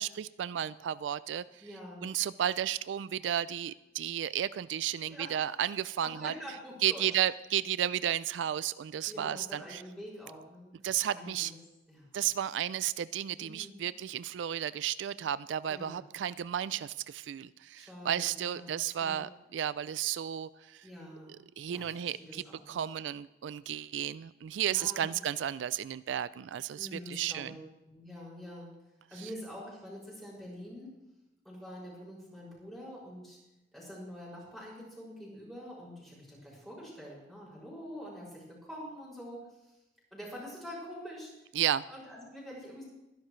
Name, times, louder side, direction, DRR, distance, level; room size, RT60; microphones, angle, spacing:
voice 1, 0.0-1.4 2.0-6.3 6.8-9.8 10.8-11.5 12.1-20.9 21.6-27.6 29.2-29.3 41.5-41.8, right 10 dB, 80° right, 17 dB, 0.3 m, -33 dB
voice 2, 1.6-2.1 5.0-5.3 6.0-7.1 9.1-10.7 11.1-11.6 11.9-12.1 13.4-13.7 15.7-16.0 17.8-19.2 20.8-21.4 21.7-22.8 24.7-25.2 26.8-28.7 29.1-30.9 31.4-33.4 33.7-39.8 40.1-41.3 41.9-42.8, equal, ahead, -6 dB, 6.1 m, -46 dB
23.0 x 11.5 x 3.2 m, 0.99 s
head